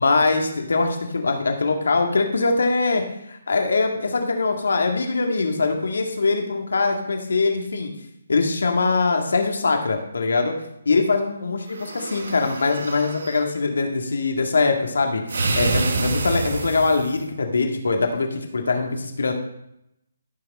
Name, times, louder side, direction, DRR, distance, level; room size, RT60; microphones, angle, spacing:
voice 1, 0.0-3.0 3.3-7.9 8.3-10.6 10.9-19.3, left 3 dB, 70° left, 3 dB, 2.0 m, -22 dB
sound 1, 11.7-13.4 15.3-17.2, right 3 dB, 65° right, 1.3 m, -27 dB
14.0 x 5.9 x 4.3 m, 0.80 s
figure-of-eight pair, 145°, 0 cm